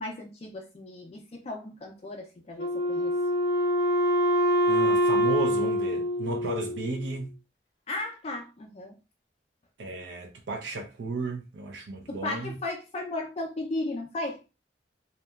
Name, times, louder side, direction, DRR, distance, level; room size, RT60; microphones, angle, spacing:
voice 1, 0.0-3.2 7.9-9.0 12.1-14.4, left 2 dB, 35° left, 0.4 m, -35 dB
Wind instrument woodwind instrument, 2.6-7.1, equal, 60° left, 0.7 m, -25 dB
voice 2, 4.7-7.3 9.8-12.6, right 3 dB, 75° right, 0.5 m, -34 dB
2.8 x 2.2 x 2.2 m
head